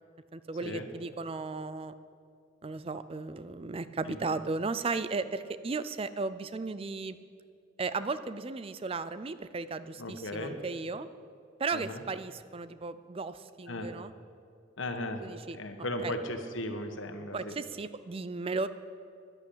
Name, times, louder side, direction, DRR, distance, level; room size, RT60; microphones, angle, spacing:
voice 1, 0.3-1.9 2.6-7.2 7.8-11.1 11.6-14.1 15.2-15.6 16.0-16.1 17.3-18.7, right 4 dB, 30° right, 13 dB, 0.4 m, -35 dB
voice 2, 10.0-10.6 11.7-12.0 13.7-13.9 14.8-15.3 15.5-17.5, left 1 dB, 80° left, 6 dB, 1.4 m, -36 dB
12.0 x 10.5 x 8.6 m, 2.3 s
head